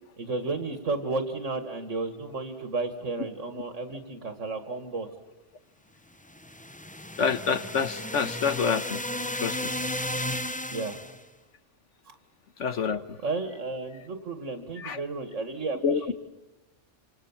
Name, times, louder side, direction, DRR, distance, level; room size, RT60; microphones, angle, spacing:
voice 1, 0.2-5.1 10.7-11.1 12.1-12.2 12.7-16.1, right 3 dB, 90° right, 8 dB, 2.3 m, -33 dB
sound 1, 6.3-11.2, left 1 dB, 10° left, 0.8 m, -34 dB
voice 2, 7.2-9.0 9.3-9.7 12.6-13.0 14.8-15.0 15.8-16.0, left 6 dB, 75° left, 12 dB, 1.5 m, -27 dB
27.0 x 27.0 x 7.3 m, 0.99 s
omnidirectional pair, 1.2 m